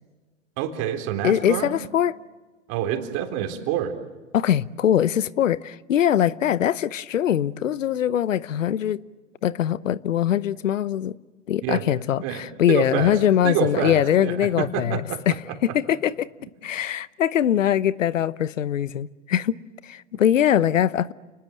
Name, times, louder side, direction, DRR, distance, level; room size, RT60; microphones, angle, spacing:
voice 1, 0.6-1.7 2.7-3.9 11.6-11.9 12.2-15.2, right 10 dB, 40° right, 3.8 m, -27 dB
voice 2, 1.2-2.1 4.3-9.0 9.4-11.2 11.5-15.0 15.3-15.4 15.7-16.3 16.6-19.6 19.8-21.1, left 10 dB, 80° left, 0.9 m, -22 dB
30.0 x 20.5 x 7.7 m
hypercardioid pair, 120°, 38 cm